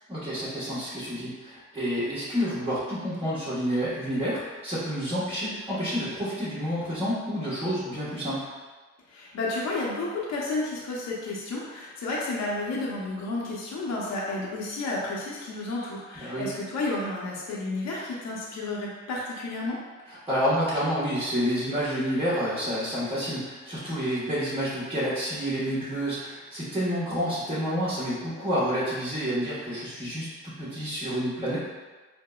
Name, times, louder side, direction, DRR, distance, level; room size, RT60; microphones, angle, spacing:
voice 1, 0.1-8.5 16.1-16.5 20.1-31.6, equal, 15° right, -13 dB, 1.3 m, -29 dB
voice 2, 9.1-19.8, left 2 dB, 60° left, -4 dB, 0.7 m, -31 dB
4.7 x 2.1 x 2.3 m, 1.3 s
cardioid pair, 90°, 30 cm